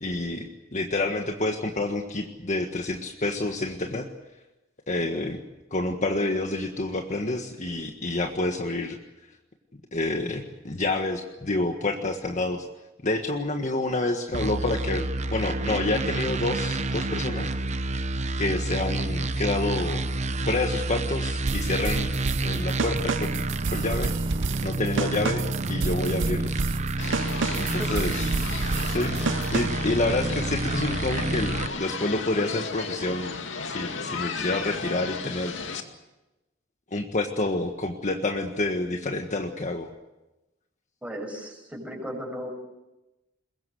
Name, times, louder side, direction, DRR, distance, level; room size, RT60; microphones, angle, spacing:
voice 1, 0.0-4.1 4.9-5.4 5.7-9.0 9.9-12.7 13.0-17.5 18.4-20.0 20.4-22.1 22.4-24.1 24.6-26.6 27.6-28.1 28.9-29.2 29.5-33.4 33.6-35.6 36.9-39.9, left 2 dB, 40° left, 4 dB, 1.6 m, -28 dB
sound 1, 14.3-31.7, right 2 dB, 40° right, 0.8 m, -29 dB
sound 2, 21.5-29.9, right 4 dB, 75° right, 0.7 m, -30 dB
sound 3, 27.0-35.8, left 4 dB, 80° left, 2.2 m, -35 dB
voice 2, 41.0-42.5, equal, 5° right, 1 dB, 6.8 m, -35 dB
22.5 x 21.5 x 7.9 m, 0.99 s
head